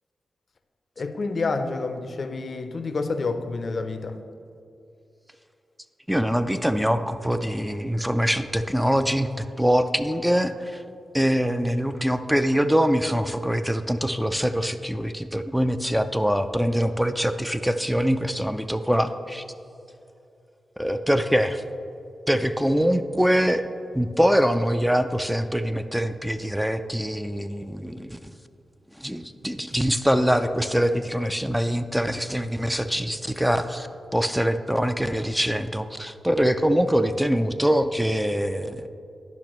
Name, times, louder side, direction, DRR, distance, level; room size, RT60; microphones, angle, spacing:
voice 1, 1.0-4.1, left 3 dB, 55° left, 9 dB, 0.5 m, -28 dB
voice 2, 6.1-10.8 11.1-19.4 20.8-21.6 22.3-23.6 23.9-28.3 29.0-38.9, equal, 5° right, 9 dB, 0.3 m, -24 dB
10.5 x 5.8 x 3.0 m, 2.6 s
cardioid pair, 50°, 0 cm